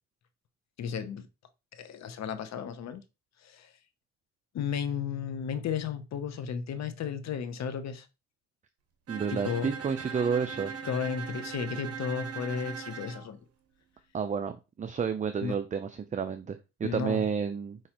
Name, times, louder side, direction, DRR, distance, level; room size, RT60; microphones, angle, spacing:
voice 1, 0.8-1.3 1.7-3.0 3.4-3.7 4.5-8.1 9.4-9.7 10.8-13.4 15.4-15.6 16.8-17.2, left 7 dB, 60° left, 0.7 m, -34 dB
voice 2, 9.1-10.7 14.1-17.8, right 6 dB, 25° right, 0.4 m, -31 dB
Bowed string instrument, 9.1-13.3, right 6 dB, 50° right, 1.0 m, -40 dB
5.7 x 3.1 x 2.9 m
cardioid pair, 90°, 30 cm